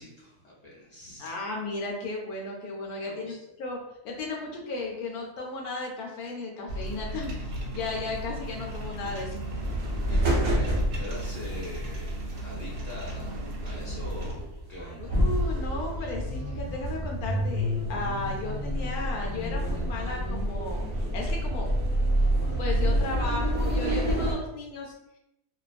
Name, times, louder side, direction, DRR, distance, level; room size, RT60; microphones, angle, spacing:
voice 1, 0.0-1.4 3.0-3.4 9.8-14.4 14.7-15.1, left 1 dB, 50° left, -6 dB, 0.4 m, -43 dB
voice 2, 1.2-3.8 4.0-9.4 15.0-21.7 22.6-24.9, left 3 dB, 75° left, 0 dB, 1.0 m, -35 dB
sound 1, 6.7-14.3, right 1 dB, 70° right, 0.9 m, -36 dB
sound 2, 8.7-24.3, equal, 45° right, 0.8 m, -28 dB
2.5 x 2.2 x 2.4 m, 0.82 s
omnidirectional pair, 1.7 m